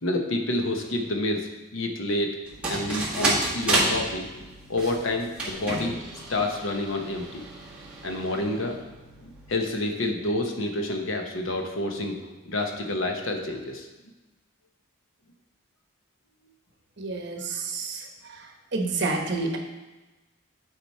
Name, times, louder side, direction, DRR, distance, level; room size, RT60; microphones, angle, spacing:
voice 1, 0.0-2.4 2.7-6.0 6.3-7.4 8.0-8.8 9.2-13.9, left 1 dB, 75° left, 3 dB, 1.0 m, -29 dB
sound 1, 2.5-9.5, right 2 dB, 5° right, 1.8 m, -31 dB
voice 2, 17.0-19.6, right 3 dB, 55° right, 3 dB, 1.1 m, -30 dB
9.4 x 5.0 x 4.3 m, 1.1 s
head